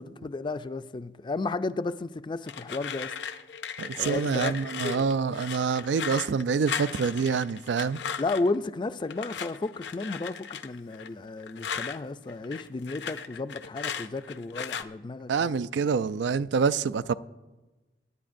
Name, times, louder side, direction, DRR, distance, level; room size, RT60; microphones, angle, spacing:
voice 1, 0.0-3.1 3.9-4.5 4.8-5.1 8.2-15.6, left 3 dB, 25° left, 0.4 m, -33 dB
sound 1, 2.5-8.6 9.1-12.0 12.3-14.8, left 7 dB, 75° left, 0.6 m, -37 dB
voice 2, 3.8-8.0 15.3-17.1, right 5 dB, 85° right, 0.4 m, -26 dB
25.0 x 9.9 x 2.6 m
head